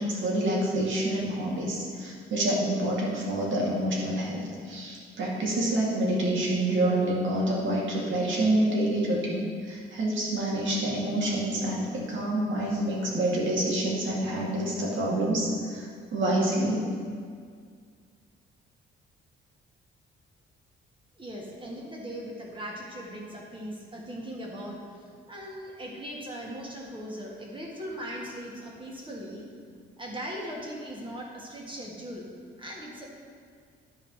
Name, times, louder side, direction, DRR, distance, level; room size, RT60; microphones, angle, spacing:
voice 1, 0.0-16.8, right 1 dB, 65° right, -3 dB, 2.2 m, -27 dB
voice 2, 21.2-29.5 30.0-32.3 32.6-33.1, equal, 25° right, -2 dB, 1.8 m, -39 dB
11.0 x 4.8 x 4.9 m, 2.1 s
cardioid pair, 120°, 21 cm